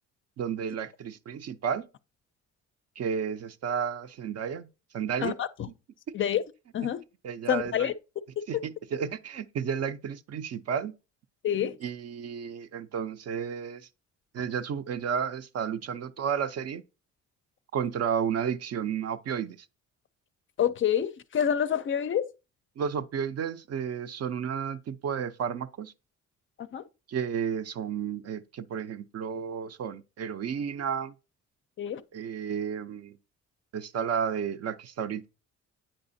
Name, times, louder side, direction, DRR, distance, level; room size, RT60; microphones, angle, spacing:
voice 1, 0.4-1.9 3.0-4.7 4.9-5.4 7.2-7.9 8.5-10.9 11.8-13.9 14.3-16.8 17.7-19.7 22.8-25.9 27.1-31.1 32.1-33.2 33.7-35.3, right 7 dB, 55° right, 0.5 m, -32 dB
voice 2, 5.2-5.7 6.1-6.4 6.7-7.0 7.5-7.9 8.4-8.6 11.4-11.8 20.6-22.3 26.6-26.8 31.8-32.0, left 9 dB, 40° left, 0.4 m, -27 dB
8.8 x 4.9 x 2.6 m
cardioid pair, 90°, 30 cm